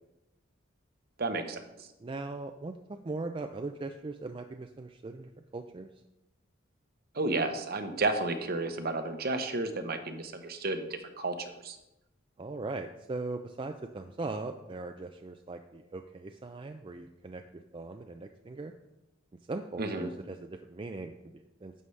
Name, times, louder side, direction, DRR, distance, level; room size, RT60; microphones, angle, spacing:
voice 1, 1.2-1.6 7.1-11.8 19.8-20.1, right 2 dB, 50° right, 8 dB, 0.8 m, -32 dB
voice 2, 2.0-5.9 12.4-18.7 19.5-21.7, right 3 dB, 25° right, 5 dB, 0.4 m, -39 dB
11.0 x 7.7 x 3.3 m, 0.93 s
head